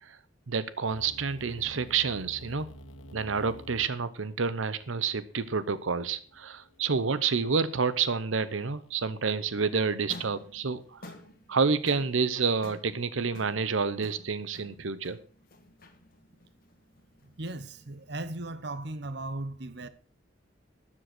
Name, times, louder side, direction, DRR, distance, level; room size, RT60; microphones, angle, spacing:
voice 1, 0.5-2.6 3.1-11.0 11.5-15.2, right 5 dB, 90° right, 0.8 m, -29 dB
sound 1, 0.9-6.8, equal, 85° left, 1.5 m, -50 dB
sound 2, 10.0-18.2, left 1 dB, 45° left, 1.6 m, -51 dB
voice 2, 17.2-19.9, right 2 dB, 60° right, 0.9 m, -37 dB
13.0 x 7.7 x 6.0 m
head